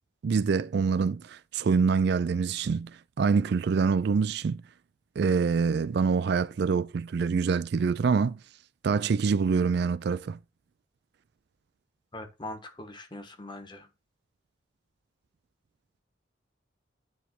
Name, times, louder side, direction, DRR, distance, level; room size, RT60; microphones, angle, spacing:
voice 1, 0.2-2.9 3.2-4.6 5.2-8.4 8.8-10.4, right 5 dB, 60° right, 0.3 m, -25 dB
voice 2, 12.1-13.9, left 1 dB, 25° left, 1.3 m, -41 dB
9.3 x 3.3 x 6.0 m
head